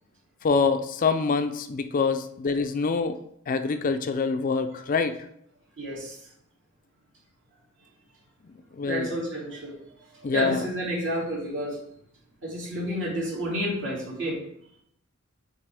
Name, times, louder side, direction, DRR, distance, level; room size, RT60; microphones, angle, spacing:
voice 1, 0.4-3.2 3.5-5.1 8.8-9.1 10.2-10.7, left 4 dB, 40° left, 9 dB, 0.4 m, -25 dB
voice 2, 5.8-6.2 8.8-9.8 10.3-11.8 12.4-14.4, equal, 60° right, -5 dB, 2.7 m, -30 dB
7.3 x 4.4 x 3.4 m, 0.72 s
head